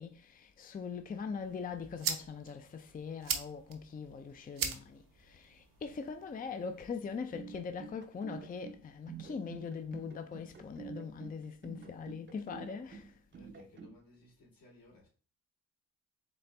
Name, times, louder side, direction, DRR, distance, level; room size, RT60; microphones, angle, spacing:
voice 1, 0.0-13.1, left 5 dB, 25° left, 0.4 m, -42 dB
sound 1, 1.4-7.4, right 7 dB, 70° right, 0.8 m, -42 dB
sound 2, 7.1-14.0, right 6 dB, 35° right, 0.6 m, -48 dB
voice 2, 13.3-15.1, left 2 dB, 80° left, 2.4 m, -60 dB
4.3 x 3.3 x 3.2 m
cardioid pair, 95°, 34 cm